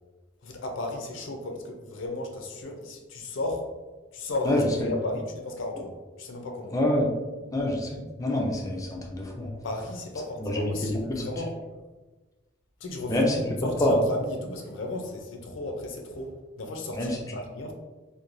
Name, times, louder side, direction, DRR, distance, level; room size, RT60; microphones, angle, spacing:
voice 1, 0.4-3.7 4.1-6.8 9.6-11.5 12.8-13.2 13.6-17.7, left 2 dB, 80° left, 3 dB, 0.5 m, -34 dB
voice 2, 4.5-4.9 6.7-7.1 7.5-9.5 10.4-10.7 11.1-11.2 13.1-13.9 17.0-17.2, left 1 dB, 20° left, -1 dB, 0.4 m, -26 dB
3.0 x 2.2 x 2.5 m, 1.2 s
head